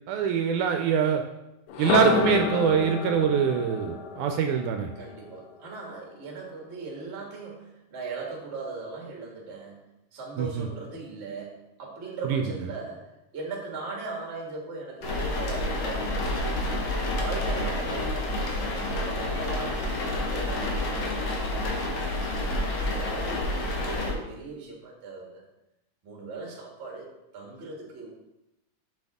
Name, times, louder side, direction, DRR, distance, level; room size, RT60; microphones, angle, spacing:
voice 1, 0.1-1.2 1.8-4.9 10.4-10.7 12.3-12.4, right 7 dB, 80° right, 5 dB, 1.9 m, -24 dB
sound 1, 1.7-5.7, left 5 dB, 90° left, 2.5 m, -29 dB
voice 2, 4.9-9.8 10.1-13.1 13.3-16.6 17.2-22.4 22.9-25.4 26.0-27.1 27.3-28.1, right 4 dB, 40° right, -1 dB, 1.0 m, -39 dB
sound 2, 15.0-24.1, left 1 dB, 60° left, 1.3 m, -29 dB
7.8 x 5.8 x 3.5 m, 0.90 s
omnidirectional pair, 3.8 m